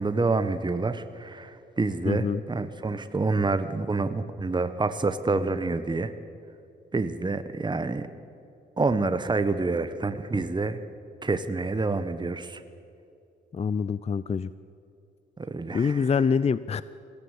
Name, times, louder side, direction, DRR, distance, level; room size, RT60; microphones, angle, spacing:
voice 1, 0.0-6.1 6.9-8.1 8.8-10.8 11.2-12.6 15.5-16.0, right 3 dB, 20° right, 11 dB, 1.3 m, -27 dB
voice 2, 2.1-2.4 13.5-14.5 15.7-16.8, left 6 dB, 30° left, 17 dB, 0.6 m, -25 dB
21.0 x 17.0 x 8.3 m, 2.6 s
hypercardioid pair, 50°, 21 cm